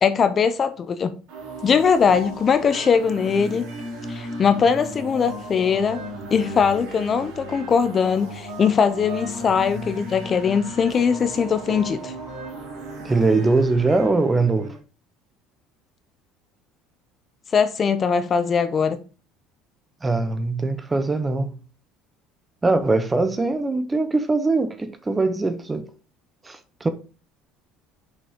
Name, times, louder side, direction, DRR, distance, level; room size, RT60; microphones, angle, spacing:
voice 1, 0.0-1.1 1.6-3.7 4.1-6.0 6.3-12.1 17.5-19.0, left 6 dB, 30° left, 0.6 m, -21 dB
sound 1, 1.3-14.8, right 1 dB, 75° right, 3.2 m, -36 dB
voice 2, 13.0-14.7 20.0-21.5 22.6-25.9 26.4-26.9, right 3 dB, 15° right, 0.8 m, -21 dB
6.4 x 5.3 x 2.9 m
cardioid pair, 140°, 0 cm